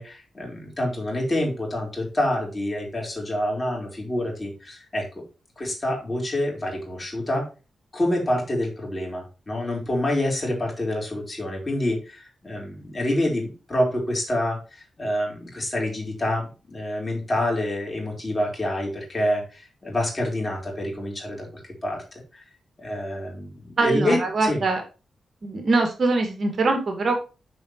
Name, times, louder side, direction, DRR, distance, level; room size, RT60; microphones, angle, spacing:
voice 1, 0.0-5.2 5.6-7.4 7.9-22.4 22.8-24.6, left 1 dB, 30° left, -1 dB, 4.6 m, -27 dB
voice 2, 23.8-24.8 25.4-27.1, right 3 dB, 55° right, 4 dB, 2.4 m, -23 dB
7.1 x 6.2 x 4.7 m, 0.32 s
cardioid pair, 70°, 0 cm